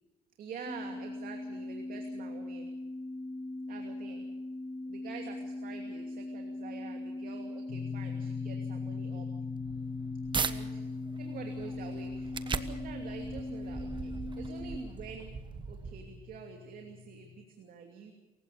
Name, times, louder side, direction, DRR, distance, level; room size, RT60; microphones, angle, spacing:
voice 1, 0.4-2.7 3.7-4.3 4.9-9.3 10.4-10.8 11.2-15.3 15.7-18.1, right 6 dB, 55° right, 3 dB, 2.7 m, -47 dB
sound 1, 0.6-14.9, left 2 dB, 15° left, 2.6 m, -40 dB
sound 2, 7.7-17.4, left 8 dB, 50° left, 3.3 m, -43 dB
sound 3, 9.4-10.6 11.1-16.4, right 5 dB, 30° right, 1.2 m, -39 dB
27.5 x 16.0 x 6.8 m, 1.2 s
cardioid pair, 110°, 17 cm